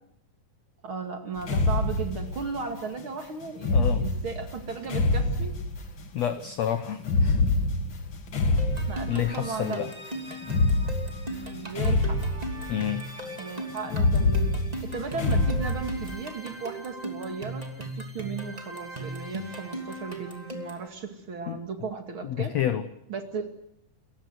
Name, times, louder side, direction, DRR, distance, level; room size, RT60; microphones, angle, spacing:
voice 1, 0.8-5.5 8.9-9.8 11.3-12.2 13.4-14.5 14.8-22.5 23.1-23.5, right 5 dB, 40° right, 5 dB, 2.4 m, -36 dB
sound 1, 1.4-2.7 3.6-6.0 7.0-9.6 10.4-12.9 13.9-16.2, left 2 dB, 45° left, 2.0 m, -26 dB
voice 2, 3.7-4.1 6.1-7.4 9.1-9.9 12.7-13.1 21.5-21.6 22.2-22.9, left 10 dB, 70° left, 10 dB, 1.6 m, -29 dB
sound 2, 8.6-20.9, right 1 dB, 10° right, 2.3 m, -38 dB
29.5 x 15.5 x 7.8 m, 0.78 s
omnidirectional pair, 4.3 m